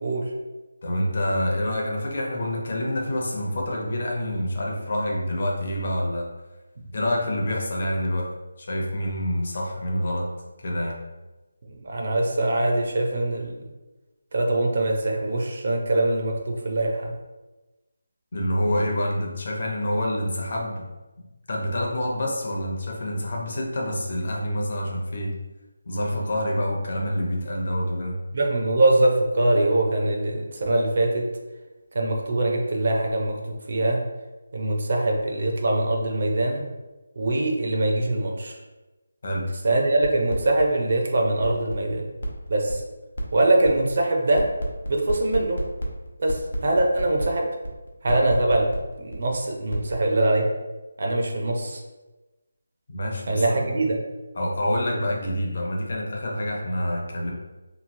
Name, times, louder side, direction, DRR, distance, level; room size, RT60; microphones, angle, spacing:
voice 1, 0.8-6.3 6.9-8.3 8.6-10.3 10.6-11.0 18.3-20.9 21.5-25.3 25.9-28.2 39.2-39.5 52.9-53.7 54.4-57.3, equal, 40° left, -1 dB, 0.6 m, -27 dB
voice 2, 11.8-13.5 14.3-17.1 28.3-31.2 31.9-33.4 33.7-34.0 34.5-36.7 37.2-38.6 39.6-42.0 42.5-42.8 43.3-44.4 44.9-45.6 46.2-47.4 48.0-48.7 49.0-50.4 51.0-51.8 53.3-54.0, right 2 dB, 40° right, 1 dB, 0.5 m, -23 dB
sound 1, 40.0-40.6 40.9-41.0 41.2-49.3 49.7-49.9, left 1 dB, 70° left, 0.8 m, -31 dB
3.0 x 2.6 x 2.5 m, 1.1 s
figure-of-eight pair, 175°, 0 cm